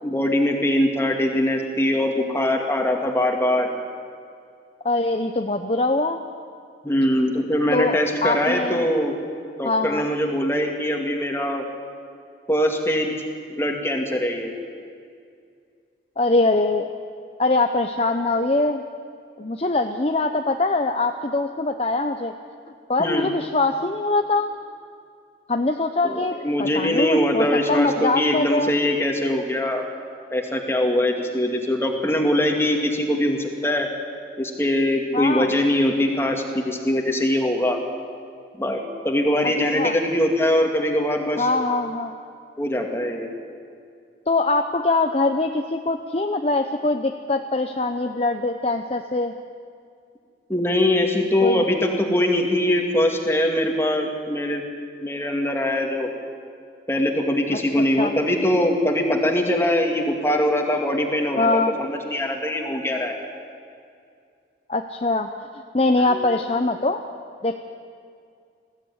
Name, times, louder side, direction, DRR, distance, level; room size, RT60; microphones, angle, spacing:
voice 1, 0.0-3.7 6.8-9.2 9.6-11.6 12.5-13.1 13.5-14.5 23.0-23.3 26.0-29.8 30.3-33.9 34.4-37.8 38.5-41.5 42.6-43.3 50.5-54.6 55.0-56.1 56.9-63.2 66.1-66.3, left 1 dB, 15° left, 2 dB, 2.2 m, -22 dB
voice 2, 4.8-6.2 7.7-8.9 9.6-10.1 16.2-16.9 17.4-18.8 19.4-22.3 22.9-24.5 25.5-28.8 35.1-35.5 39.7-40.0 41.4-42.1 44.3-49.3 51.4-51.7 58.0-58.1 61.4-61.7 64.7-65.3 65.7-67.0 67.4-67.6, left 2 dB, 35° left, 5 dB, 0.7 m, -23 dB
20.5 x 15.5 x 9.6 m, 2.3 s
head